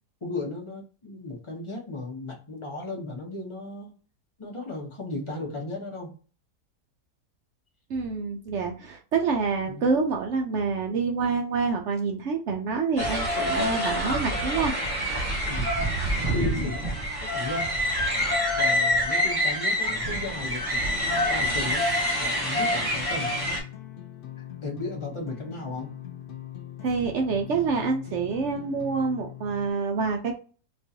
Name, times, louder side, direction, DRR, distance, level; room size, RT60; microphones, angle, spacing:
voice 1, 0.2-3.9 4.4-6.1 9.6-9.9 15.5-15.8 16.3-17.0 17.3-17.7 18.5-21.8 22.2-23.3 24.6-25.9, left 2 dB, 30° left, 1 dB, 0.5 m, -35 dB
voice 2, 7.9-14.7 26.8-30.4, right 4 dB, 75° right, 2 dB, 0.6 m, -27 dB
sound 1, 13.0-23.6, equal, 15° right, 1.1 m, -26 dB
sound 2, 19.7-29.7, left 11 dB, 90° left, 0.4 m, -42 dB
4.4 x 2.4 x 2.7 m, 0.38 s
omnidirectional pair, 1.7 m